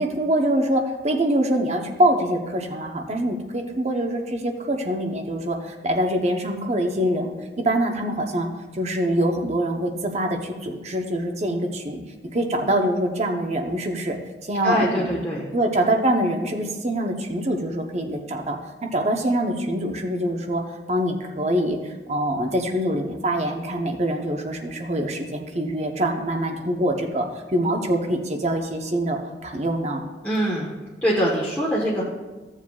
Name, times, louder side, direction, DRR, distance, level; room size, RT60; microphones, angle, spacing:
voice 1, 0.0-8.5 8.7-12.0 12.3-14.2 14.4-15.2 15.5-20.6 20.9-30.0, right 1 dB, 40° right, 3 dB, 0.8 m, -24 dB
voice 2, 14.6-15.5 30.2-30.7 31.0-32.0, equal, 10° left, -7 dB, 1.2 m, -23 dB
15.0 x 7.3 x 2.3 m, 1.2 s
head